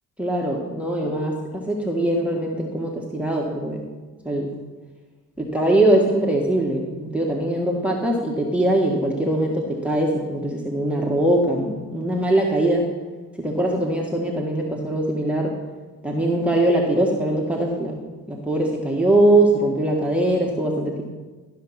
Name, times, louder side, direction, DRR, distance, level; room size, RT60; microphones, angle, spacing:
voice 1, 0.2-3.8 4.2-4.5 5.4-12.8 13.4-15.5 16.0-18.0 18.3-21.0, right 1 dB, 5° right, 0 dB, 1.6 m, -21 dB
13.5 x 5.7 x 5.8 m, 1.3 s
supercardioid pair, 65°, 42 cm